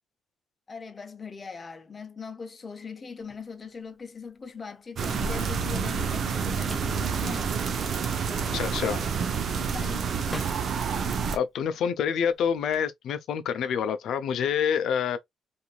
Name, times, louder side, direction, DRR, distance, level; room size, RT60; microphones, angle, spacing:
voice 1, 0.7-7.5 8.3-9.2 9.5-10.1, left 5 dB, 35° left, 0.6 m, -41 dB
Drawer open or close, 3.2-12.8, equal, ahead, 0.8 m, -46 dB
sound 1, 5.0-11.4, right 6 dB, 55° right, 0.5 m, -28 dB
voice 2, 8.5-9.0 11.3-15.2, left 7 dB, 75° left, 0.4 m, -27 dB
3.0 x 2.6 x 2.3 m
cardioid pair, 90°, 0 cm